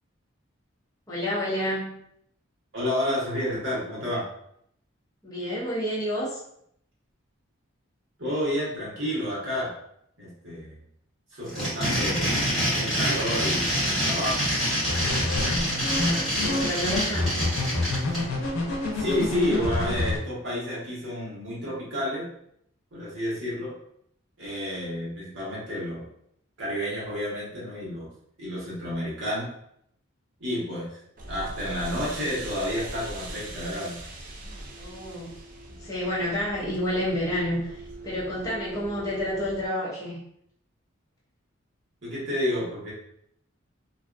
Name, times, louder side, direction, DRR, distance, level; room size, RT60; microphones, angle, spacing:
voice 1, 1.1-2.0 5.2-6.4 16.0-17.3 34.7-35.3 35.7-40.2, left 1 dB, 15° left, -7 dB, 0.6 m, -30 dB
voice 2, 2.7-4.2 8.2-9.7 10.2-10.8 11.3-12.3 12.7-14.7 18.9-22.3 22.9-23.7 24.4-26.0 26.6-28.1 28.4-29.5 30.4-30.9 31.3-34.0 42.0-42.9, left 1 dB, 65° right, -7 dB, 1.2 m, -30 dB
sound 1, 11.4-18.2, equal, ahead, 1.1 m, -26 dB
sound 2, 14.8-20.2, left 2 dB, 85° left, 0.6 m, -28 dB
sound 3, 31.2-39.7, right 2 dB, 40° right, 0.3 m, -40 dB
2.5 x 2.2 x 2.5 m, 0.72 s
head